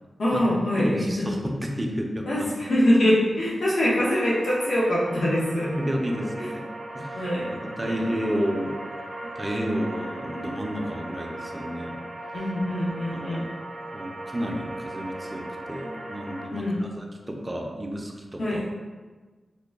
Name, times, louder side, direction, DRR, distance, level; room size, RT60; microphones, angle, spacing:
voice 1, 0.2-1.2 2.3-5.7 6.4-6.5 7.1-7.5 7.8-8.2 12.3-13.5 16.5-16.8 18.4-18.7, left 1 dB, 75° left, -7 dB, 0.9 m, -24 dB
voice 2, 0.8-2.5 5.8-6.6 6.9-7.2 7.6-8.8 9.4-12.0 13.1-13.4 13.9-18.6, equal, 20° right, 1 dB, 0.5 m, -31 dB
sound 1, 4.2-16.5, right 1 dB, 55° right, 0.7 m, -38 dB
3.8 x 2.2 x 3.4 m, 1.3 s
wide cardioid pair, 80°, 0 cm